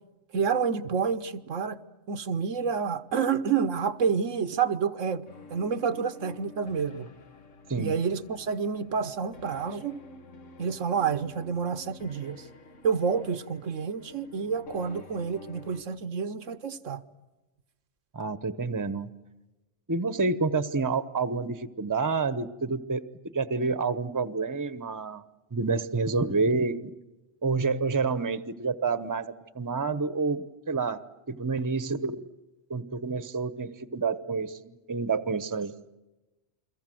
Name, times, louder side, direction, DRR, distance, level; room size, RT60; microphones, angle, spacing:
voice 1, 0.3-1.8 2.1-7.1 7.8-10.0 10.6-12.5 12.8-17.0, right 6 dB, 90° right, 1.4 m, -29 dB
sound 1, 5.2-15.8, left 4 dB, 85° left, 2.0 m, -50 dB
voice 2, 18.1-19.2 19.9-25.2 25.5-26.9 27.4-31.0 31.3-32.3 32.7-35.7, right 4 dB, 20° right, 0.8 m, -29 dB
29.5 x 22.5 x 7.7 m
omnidirectional pair, 1.3 m